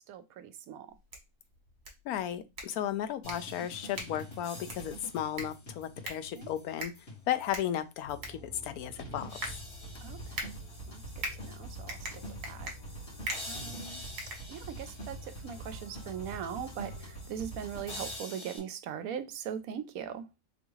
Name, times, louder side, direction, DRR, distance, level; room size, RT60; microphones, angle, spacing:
voice 1, 0.1-0.9 6.3-6.5 10.0-10.2 10.4-10.5 10.9-12.7 13.4-14.0 14.5-20.3, right 8 dB, 80° right, 1.0 m, -40 dB
sound 1, 0.9-15.0, right 1 dB, 50° right, 1.4 m, -44 dB
voice 2, 2.0-6.9 7.3-9.3, left 11 dB, 85° left, 1.1 m, -34 dB
sound 2, 3.2-7.7 8.1-8.2 9.0-18.6, right 1 dB, 60° left, 2.3 m, -45 dB
sound 3, 8.0-18.2, left 3 dB, 20° left, 2.0 m, -49 dB
4.0 x 3.5 x 3.1 m
omnidirectional pair, 1.5 m